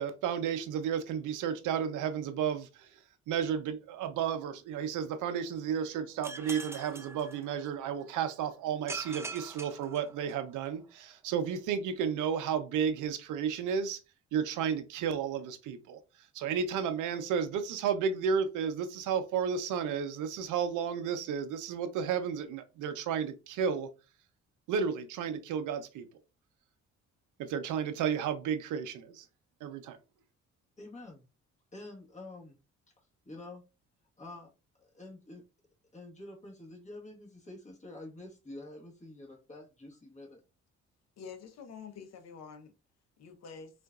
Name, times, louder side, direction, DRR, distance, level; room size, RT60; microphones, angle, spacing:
voice 1, 0.0-2.9 3.3-14.0 14.3-16.0 16.3-23.9 24.7-26.1 27.4-29.2 29.6-30.0, right 7 dB, 85° right, 0.6 m, -32 dB
sound 1, 6.2-8.0 8.9-10.7, right 3 dB, 10° right, 0.4 m, -43 dB
voice 2, 30.8-31.2 31.7-32.6 33.0-33.6 34.2-34.5 34.8-35.4 35.9-40.4, left 2 dB, 25° left, 1.3 m, -48 dB
voice 3, 41.2-42.7 43.2-43.7, left 6 dB, 60° left, 0.8 m, -47 dB
3.7 x 2.5 x 2.3 m
cardioid pair, 90°, 30 cm